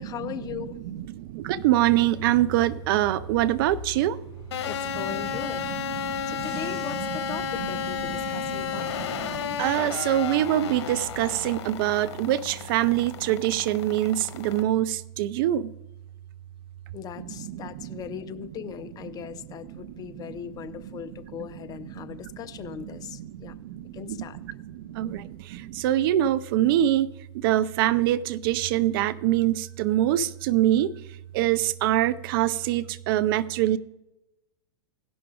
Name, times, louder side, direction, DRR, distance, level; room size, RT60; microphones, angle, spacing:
voice 1, 0.0-0.8 4.6-5.6 6.3-8.9 16.9-23.5 23.9-24.4, left 9 dB, 25° left, 11 dB, 0.6 m, -38 dB
voice 2, 0.6-4.2 4.9-5.0 5.6-6.8 7.1-7.8 8.3-15.7 17.2-18.0 19.7-21.0 22.0-22.2 22.6-30.9 31.3-33.8, right 13 dB, 55° right, 17 dB, 0.5 m, -25 dB
Bus / Engine, 1.8-9.8, left 2 dB, 20° right, 3.7 m, -45 dB
sound 1, 4.5-14.6, left 8 dB, 65° left, 1.3 m, -33 dB
17.0 x 6.0 x 3.7 m, 0.95 s
hypercardioid pair, 115°, 14 cm